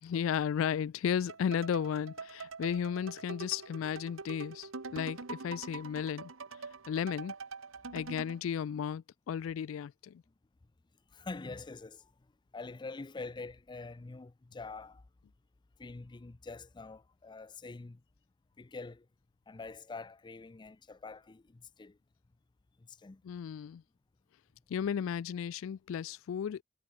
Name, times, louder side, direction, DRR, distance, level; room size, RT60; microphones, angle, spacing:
voice 1, 0.0-6.3 6.9-7.3 7.9-10.2 23.2-23.8 24.7-26.6, left 8 dB, 85° left, 0.3 m, -34 dB
sound 1, 1.3-8.4, right 4 dB, 85° right, 1.3 m, -44 dB
voice 2, 11.1-12.1 12.5-15.0 15.8-18.0 18.6-19.1 19.5-22.0 22.8-23.2, left 3 dB, 25° left, 0.5 m, -45 dB
head